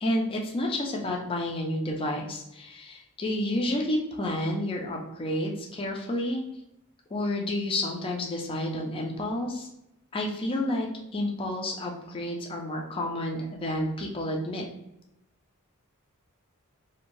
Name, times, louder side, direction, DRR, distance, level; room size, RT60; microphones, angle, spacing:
voice 1, 0.0-6.4 7.1-9.7 10.1-14.7, left 1 dB, 25° left, 0 dB, 0.4 m, -30 dB
2.6 x 2.1 x 2.9 m, 0.85 s
head